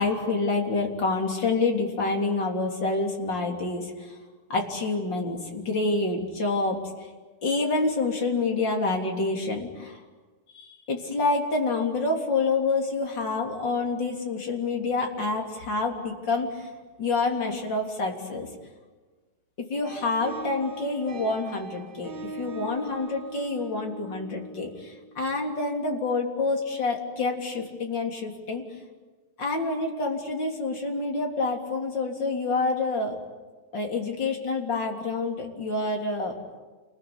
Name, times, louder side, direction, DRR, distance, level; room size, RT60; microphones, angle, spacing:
voice 1, 0.0-4.2 4.5-6.8 7.4-10.0 10.5-16.7 17.0-18.5 19.7-28.6 29.4-33.2 33.7-36.4, left 3 dB, 30° left, 1 dB, 3.7 m, -27 dB
sound 1, 19.8-25.3, right 3 dB, 40° right, 1.8 m, -41 dB
29.0 x 21.0 x 9.8 m, 1.3 s
omnidirectional pair, 4.3 m